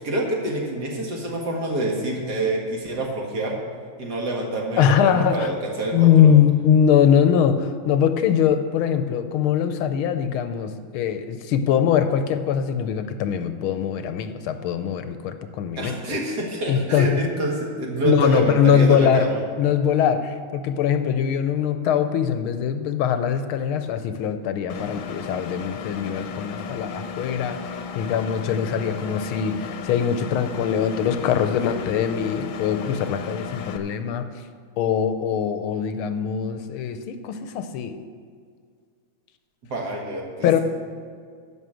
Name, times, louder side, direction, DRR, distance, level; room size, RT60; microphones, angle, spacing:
voice 1, 0.0-3.6 4.0-6.4 15.8-19.4 39.7-40.6, right 1 dB, 50° right, -1 dB, 2.2 m, -27 dB
voice 2, 4.8-5.5 5.9-16.0 16.7-17.2 18.0-19.3 19.6-34.3 34.8-38.0 40.4-40.6, left 8 dB, 85° left, 9 dB, 1.5 m, -22 dB
Engine, 24.7-33.8, left 6 dB, 65° left, 1.4 m, -34 dB
11.0 x 6.5 x 7.6 m, 2.1 s
omnidirectional pair, 2.3 m